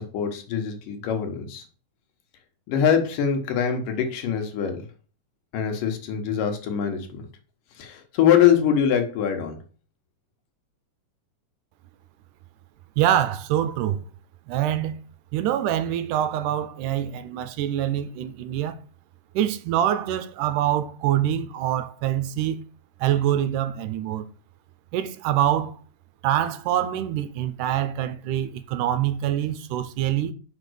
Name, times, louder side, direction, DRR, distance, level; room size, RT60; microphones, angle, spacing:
voice 1, 0.0-1.6 2.7-4.9 5.5-7.3 7.8-9.6, left 8 dB, 80° left, 2.9 m, -23 dB
voice 2, 13.0-14.0 14.5-15.0 15.3-18.8 19.3-22.6 23.0-24.3 24.9-25.8 26.2-30.3, right 11 dB, 80° right, 2.1 m, -25 dB
5.8 x 5.2 x 6.2 m
omnidirectional pair, 3.8 m